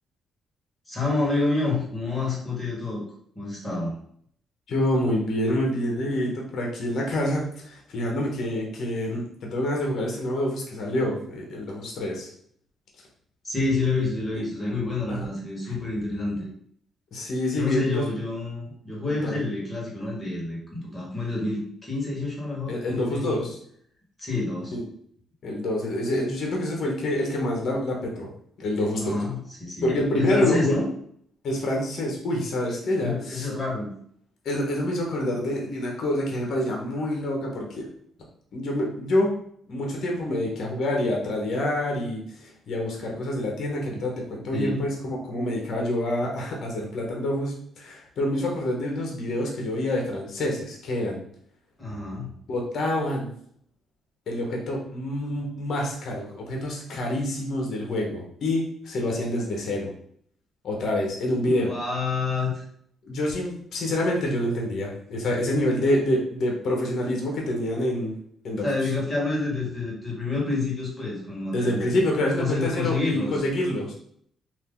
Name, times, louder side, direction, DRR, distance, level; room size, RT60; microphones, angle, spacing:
voice 1, 0.9-3.0 3.3-3.9 13.4-16.5 17.5-23.4 24.2-24.7 29.0-29.9 30.2-30.9 33.0-33.9 44.5-44.9 51.8-52.3 61.4-62.6 68.6-71.8 72.4-73.4, left 3 dB, 20° left, -3 dB, 1.5 m, -28 dB
voice 2, 4.7-12.3 15.1-15.3 15.7-15.8 17.1-18.1 19.1-19.4 22.7-23.6 24.7-24.8 25.4-28.3 28.6-29.2 29.8-30.7 31.4-33.5 34.4-37.9 38.5-39.3 39.7-51.2 52.5-53.3 54.3-59.9 60.6-61.7 63.0-68.1 68.4-68.7 71.5-73.9, left 1 dB, 65° left, -1 dB, 1.0 m, -27 dB
2.7 x 2.6 x 3.7 m, 0.64 s
cardioid pair, 90°, 0 cm